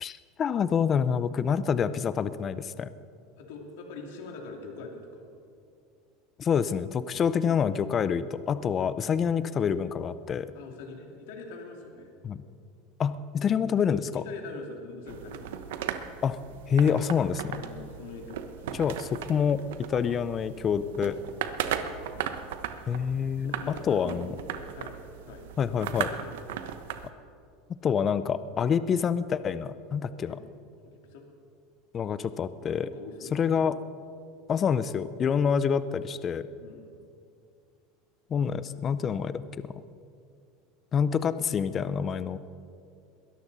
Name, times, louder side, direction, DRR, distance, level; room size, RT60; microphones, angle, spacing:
voice 1, 0.0-2.9 6.4-10.5 12.2-12.4 13.0-14.2 16.2-16.4 16.7-17.6 18.8-21.2 22.9-24.3 25.6-26.1 27.8-30.4 31.9-32.9 33.3-33.8 34.5-36.5 38.3-39.4 40.9-42.4, left 7 dB, 30° left, 14 dB, 0.6 m, -27 dB
voice 2, 3.4-5.2 7.5-7.6 10.5-12.1 14.1-15.7 17.6-18.8 22.1-22.4 23.4-25.0 25.3-25.5 26.1-26.3 30.2-30.4 30.9-31.2 32.8-33.8 36.6-36.9, left 4 dB, 75° left, 2 dB, 2.6 m, -43 dB
sound 1, 15.1-27.1, right 9 dB, 85° right, 1.0 m, -37 dB
21.5 x 13.5 x 4.1 m, 2.4 s
supercardioid pair, 130°, 0 cm